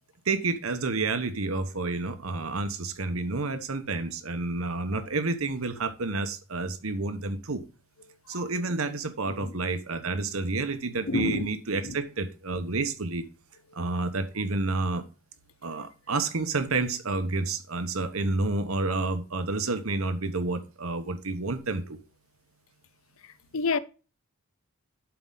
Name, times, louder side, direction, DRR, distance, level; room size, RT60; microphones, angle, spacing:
voice 1, 0.2-7.6 8.3-13.3 13.7-15.0 15.6-22.0, right 3 dB, 70° right, 1.1 m, -29 dB
voice 2, 11.1-11.4 11.8-12.0 23.5-23.8, left 3 dB, 65° left, 0.6 m, -28 dB
11.5 x 4.8 x 3.9 m
head